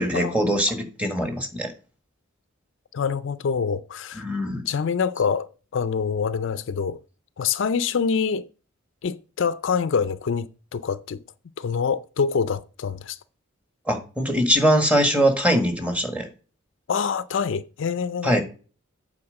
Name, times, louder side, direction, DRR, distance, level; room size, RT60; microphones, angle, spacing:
voice 1, 0.0-1.7 4.1-4.6 13.9-16.3 18.2-18.4, equal, 5° right, 1.5 m, -22 dB
voice 2, 2.9-4.2 4.5-5.5 5.7-7.0 7.4-8.5 9.0-11.2 11.6-13.2 16.9-18.4, left 6 dB, 65° left, 0.4 m, -25 dB
8.6 x 4.2 x 6.4 m
head